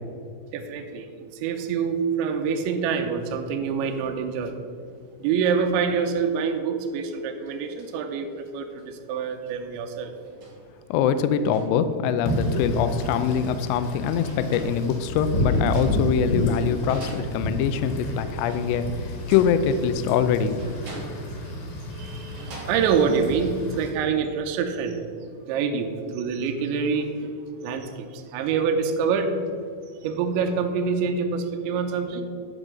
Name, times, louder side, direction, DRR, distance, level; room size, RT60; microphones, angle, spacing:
voice 1, 0.5-1.1 1.4-4.6 5.2-10.1 12.5-12.6 21.9-25.0 25.5-27.4 27.6-29.4 30.0-32.2, right 6 dB, 80° right, 5 dB, 3.1 m, -26 dB
sound 1, 6.9-7.0 7.5-7.9 8.7-8.8 10.0-10.7 11.3-11.7 12.7-13.3 13.9-14.0 14.2-15.0 15.5-16.5 16.9-17.9 18.4-19.7 20.6-21.5 22.1-22.9, right 2 dB, 50° right, 3.4 m, -43 dB
voice 2, 10.9-20.6, left 7 dB, 80° left, 11 dB, 2.6 m, -23 dB
Wind / Rain, 12.3-23.9, left 1 dB, 65° left, 3.4 m, -30 dB
12.0 x 5.5 x 6.1 m, 2.3 s
omnidirectional pair, 5.5 m